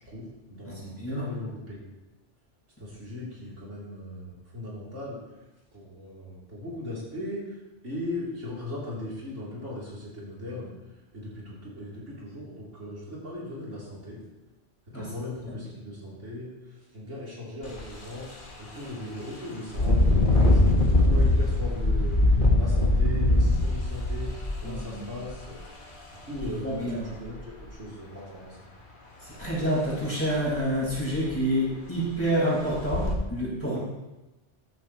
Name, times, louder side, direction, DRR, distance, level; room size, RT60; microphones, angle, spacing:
voice 1, 0.1-1.9 2.8-5.2 5.7-7.6 7.8-10.7 11.1-14.2 14.9-16.5 16.9-18.3 18.6-20.6 21.0-25.9 26.3-28.6, left 1 dB, 85° right, -6 dB, 4.1 m, -38 dB
voice 2, 0.7-1.3 14.9-15.1 24.6-25.1 26.5-27.1 29.2-33.8, equal, 10° left, -8 dB, 5.3 m, -28 dB
Engine, 17.6-17.8 18.3-18.5 19.7-25.5 26.4-26.5 26.9-27.6 29.4-29.5 29.9-30.0 30.5-30.6 30.9-31.4 32.0-32.1 32.7-33.1, left 2 dB, 45° left, 1.8 m, -22 dB
14.5 x 12.0 x 3.3 m, 1.0 s
omnidirectional pair, 1.2 m